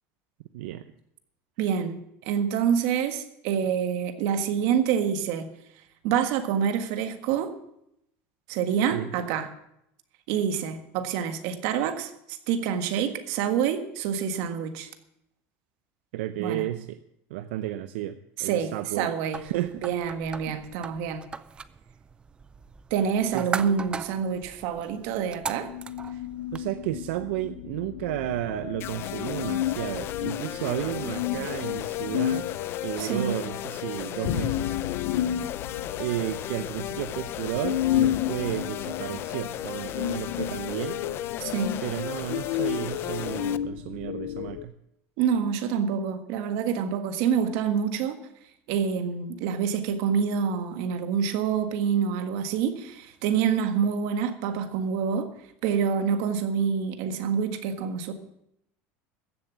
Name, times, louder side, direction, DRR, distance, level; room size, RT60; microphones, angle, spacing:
voice 1, 0.5-0.8 8.9-9.4 16.1-17.0 17.3-19.8 20.5-20.7 23.3-23.5 26.5-32.5 32.8-34.7 35.0-35.2 36.0-41.0 41.8-44.7, right 14 dB, 90° right, 10 dB, 0.6 m, -32 dB
voice 2, 1.6-5.5 6.0-7.5 8.5-9.5 10.3-14.9 16.4-16.6 18.4-19.4 19.8-21.2 22.9-25.7 33.0-33.3 41.4-41.8 45.2-48.2 48.7-55.3 55.6-58.1, right 7 dB, 65° right, 8 dB, 1.6 m, -27 dB
sound 1, 19.3-26.7, right 5 dB, 15° right, 0.4 m, -39 dB
sound 2, 25.5-44.6, left 12 dB, 90° left, 0.7 m, -32 dB
sound 3, 28.8-43.6, left 12 dB, 40° left, 0.5 m, -36 dB
15.0 x 7.4 x 7.3 m, 0.78 s
cardioid pair, 150°, 6 cm